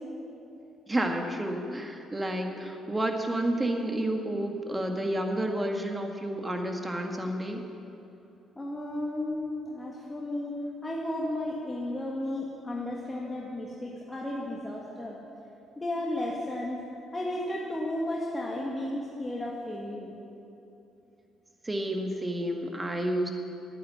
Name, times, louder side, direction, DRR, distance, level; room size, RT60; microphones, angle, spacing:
voice 1, 0.9-7.6 21.6-23.3, right 1 dB, 20° right, 3 dB, 2.0 m, -30 dB
voice 2, 8.6-15.2 15.8-16.8 17.1-20.1, left 1 dB, 20° left, -4 dB, 2.0 m, -33 dB
11.0 x 9.8 x 7.9 m, 2.8 s
hypercardioid pair, 55°, 0 cm